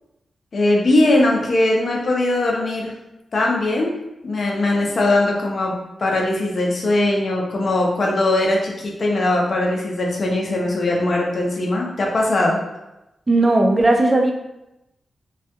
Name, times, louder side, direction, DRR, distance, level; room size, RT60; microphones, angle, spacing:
voice 1, 0.5-2.9 3.3-3.9 4.2-5.7 6.0-12.6, left 2 dB, 50° left, -1 dB, 0.5 m, -20 dB
voice 2, 13.3-14.3, right 2 dB, 20° right, 2 dB, 0.3 m, -16 dB
2.3 x 2.1 x 2.8 m, 0.93 s
wide cardioid pair, 135°, 0 cm